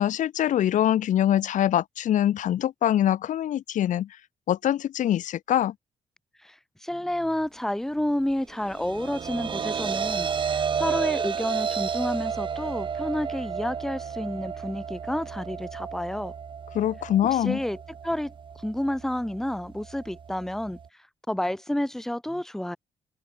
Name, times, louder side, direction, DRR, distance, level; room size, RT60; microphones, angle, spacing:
voice 1, 0.0-4.2 4.5-5.7 16.7-17.6, left 11 dB, 75° left, 4.4 m, -24 dB
voice 2, 6.4-16.3 17.4-17.8 18.0-20.8 21.3-22.8, left 1 dB, 5° left, 2.0 m, -30 dB
sound 1, 8.5-20.9, right 7 dB, 40° right, 4.5 m, -32 dB
wide cardioid pair, 170°, 13 cm